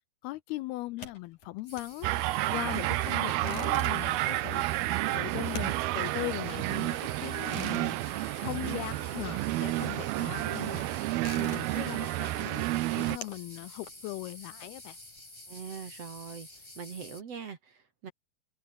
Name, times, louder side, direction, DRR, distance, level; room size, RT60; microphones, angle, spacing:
voice 1, 0.2-2.1 2.5-4.7 5.1-8.0 8.4-11.1 11.4-12.7 12.9-15.0, left 18 dB, 80° left, 2.4 m, -39 dB
sound 1, 0.8-9.2 9.4-15.2, left 5 dB, 45° left, 6.2 m, -49 dB
sound 2, 1.7-17.2, left 1 dB, 10° left, 1.6 m, -49 dB
sound 3, 2.0-13.2, right 18 dB, 80° right, 2.5 m, -30 dB
voice 2, 15.5-16.5 16.8-18.1, right 6 dB, 45° right, 2.7 m, -42 dB
omnidirectional pair, 4.8 m